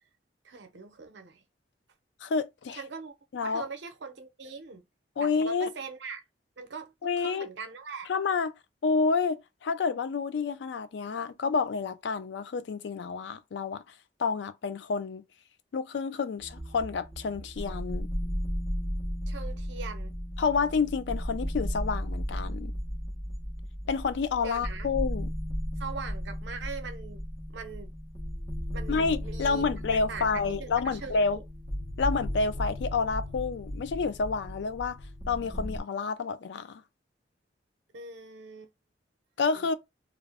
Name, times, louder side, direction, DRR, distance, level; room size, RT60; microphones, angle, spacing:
voice 1, 0.4-1.4 2.7-3.1 3.4-4.9 5.2-6.2 6.6-8.1 19.3-20.2 24.4-24.9 25.8-27.2 27.5-27.9 28.7-31.4 37.9-38.7 39.5-39.7, right 5 dB, 75° right, 0.6 m, -41 dB
voice 2, 2.2-2.8 3.3-3.6 5.2-5.7 7.0-7.5 8.1-8.5 8.8-13.8 14.2-15.2 15.7-18.1 20.4-22.7 23.9-25.3 28.9-31.4 32.0-35.0 35.3-36.8 39.4-39.7, left 4 dB, 70° left, 0.4 m, -29 dB
sound 1, 16.4-35.8, equal, 15° left, 0.7 m, -35 dB
2.5 x 2.0 x 3.3 m
head